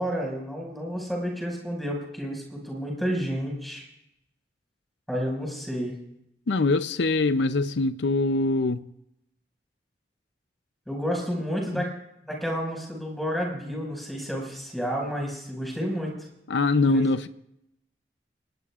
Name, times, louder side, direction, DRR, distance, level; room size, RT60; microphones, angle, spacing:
voice 1, 0.0-3.8 5.1-6.0 10.9-11.9 12.3-16.3 16.9-17.0, equal, ahead, 5.6 m, -30 dB
voice 2, 6.5-8.9 11.7-11.8 16.5-17.3, left 3 dB, 70° left, 0.6 m, -23 dB
29.5 x 19.5 x 2.5 m
head